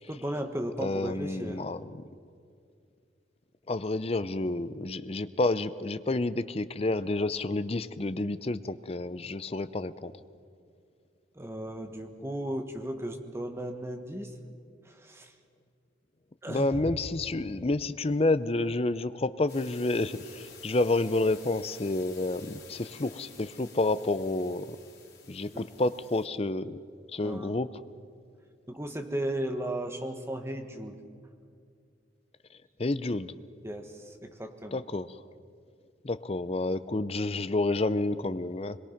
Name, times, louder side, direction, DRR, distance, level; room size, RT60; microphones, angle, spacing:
voice 1, 0.1-1.6 11.3-14.4 14.8-15.3 16.4-16.8 25.5-25.6 27.2-27.6 28.7-31.0 33.6-34.8, right 1 dB, 15° right, 5 dB, 1.4 m, -35 dB
voice 2, 0.8-2.0 3.7-10.1 16.5-24.8 25.3-26.8 27.1-27.7 32.8-33.3 34.7-35.2 36.0-38.8, left 2 dB, 30° left, 13 dB, 0.5 m, -29 dB
sound 1, 19.5-26.3, left 6 dB, 55° left, 4.1 m, -52 dB
23.5 x 22.0 x 5.9 m, 2.3 s
head